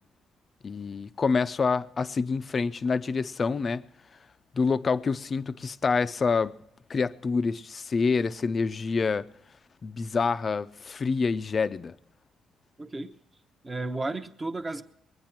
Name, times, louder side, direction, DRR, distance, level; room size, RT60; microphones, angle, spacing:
voice 1, 0.6-3.8 4.5-6.5 6.9-9.2 9.8-11.9, left 4 dB, 30° left, 0.5 m, -27 dB
voice 2, 12.8-13.1 13.6-14.8, right 2 dB, 20° right, 0.8 m, -33 dB
21.0 x 9.6 x 5.9 m
cardioid pair, 155°, 0 cm